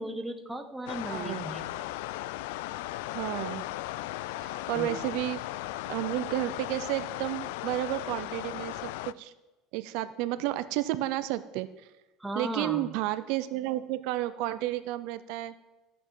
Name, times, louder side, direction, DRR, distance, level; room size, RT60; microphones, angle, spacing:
voice 1, 0.0-1.8 4.7-4.9 12.2-12.9, right 1 dB, 5° right, 5 dB, 0.7 m, -36 dB
sound 1, 0.9-9.1, left 16 dB, 90° left, 0.3 m, -37 dB
voice 2, 1.1-1.4 3.1-3.7 4.4-5.4 5.9-9.3 9.7-11.7 12.3-15.5, right 15 dB, 60° right, 13 dB, 0.5 m, -32 dB
13.5 x 7.8 x 4.7 m, 1.1 s
cardioid pair, 170°, 0 cm